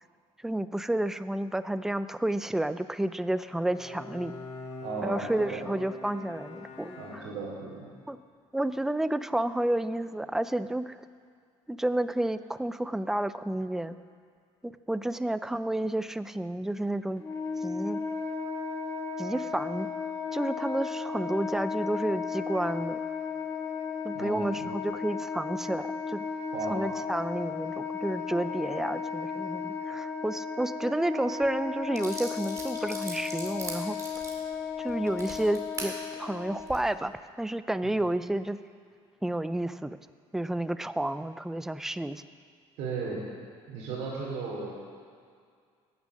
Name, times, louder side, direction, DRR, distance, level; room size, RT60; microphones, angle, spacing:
voice 1, 0.4-4.3 5.0-7.3 8.1-8.2 8.5-11.0 11.7-14.0 14.6-17.2 17.6-18.0 19.2-19.9 20.3-23.0 24.0-26.2 26.7-34.0 34.8-35.9 36.2-38.6 39.2-40.0 40.3-42.2, right 1 dB, 5° right, 13 dB, 0.4 m, -30 dB
Bowed string instrument, 3.4-7.8, left 3 dB, 65° left, 2.0 m, -44 dB
voice 2, 4.8-5.6 7.0-7.9 24.1-24.6 26.5-26.8 37.8-37.9 42.8-43.2 43.7-44.7, right 3 dB, 85° right, -6 dB, 2.7 m, -35 dB
Wind instrument woodwind instrument, 17.2-36.7, left 5 dB, 25° left, 1.8 m, -35 dB
sound 1, 31.4-31.5 32.0-35.9 36.5-36.8, right 3 dB, 25° right, 2.3 m, -40 dB
16.5 x 7.2 x 6.3 m, 2.2 s
cardioid pair, 130°, 12 cm